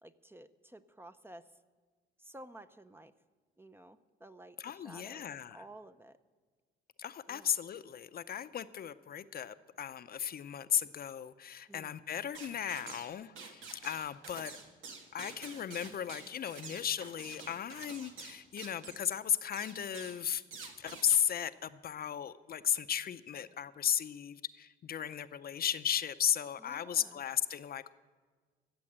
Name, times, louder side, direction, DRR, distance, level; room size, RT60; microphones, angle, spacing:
voice 1, 0.0-1.5 2.2-3.1 3.6-6.2 7.3-7.5 11.7-12.0 26.6-27.2, right 1 dB, 10° right, 11 dB, 0.6 m, -53 dB
voice 2, 4.6-5.6 7.0-14.5 15.1-20.4 20.8-27.9, left 9 dB, 50° left, 12 dB, 0.6 m, -35 dB
sound 1, 12.3-13.1 13.4-19.1 19.5-20.2 20.5-21.2, right 4 dB, 85° right, 1.7 m, -48 dB
15.0 x 7.6 x 8.8 m, 1.5 s
cardioid pair, 90°, 20 cm